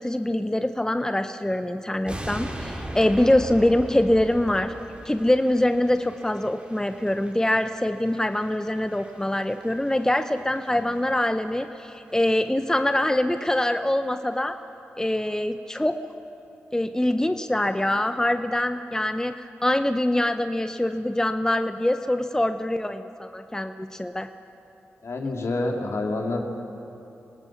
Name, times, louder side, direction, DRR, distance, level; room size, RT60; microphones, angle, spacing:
voice 1, 0.0-4.7 5.0-14.6 15.0-16.0 16.7-24.3, left 1 dB, 10° left, 8 dB, 0.8 m, -24 dB
sound 1, 2.1-11.2 11.5-11.7 12.1-12.2 12.5-12.6 12.8-13.1 13.4-13.5, right 1 dB, 20° right, 4.1 m, -40 dB
voice 2, 25.0-26.4, left 2 dB, 65° left, 1 dB, 2.6 m, -28 dB
26.0 x 18.5 x 5.9 m, 2.9 s
supercardioid pair, 40°, 5 cm